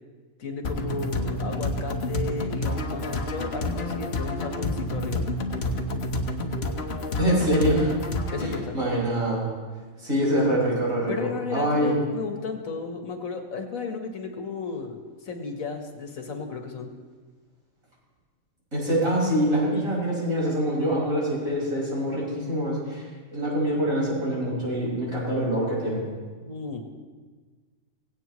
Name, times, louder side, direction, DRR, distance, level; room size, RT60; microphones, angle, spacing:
voice 1, 0.4-5.3 8.3-8.8 11.1-16.9 26.4-26.8, left 4 dB, 75° left, 4 dB, 1.7 m, -34 dB
sound 1, 0.6-8.6, left 1 dB, 50° left, 1.3 m, -29 dB
voice 2, 7.2-7.9 8.4-9.4 10.0-11.9 18.7-23.0 23.3-26.0, equal, 75° right, -5 dB, 5.8 m, -25 dB
17.5 x 17.0 x 3.1 m, 1.4 s
omnidirectional pair, 1.4 m